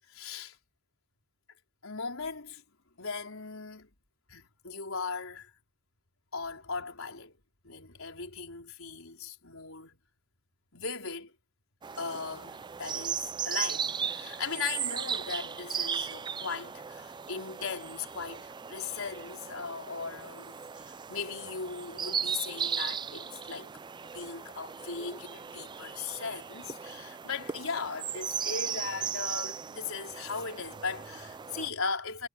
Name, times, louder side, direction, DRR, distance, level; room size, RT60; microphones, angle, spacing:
voice 1, 0.1-0.6 1.8-2.6 3.0-3.9 4.3-5.5 6.3-7.4 7.6-10.0 10.7-11.3 12.0-23.7 24.0-32.3, left 5 dB, 75° left, 4.5 m, -38 dB
sound 1, 11.8-31.7, right 7 dB, 20° right, 0.3 m, -37 dB
head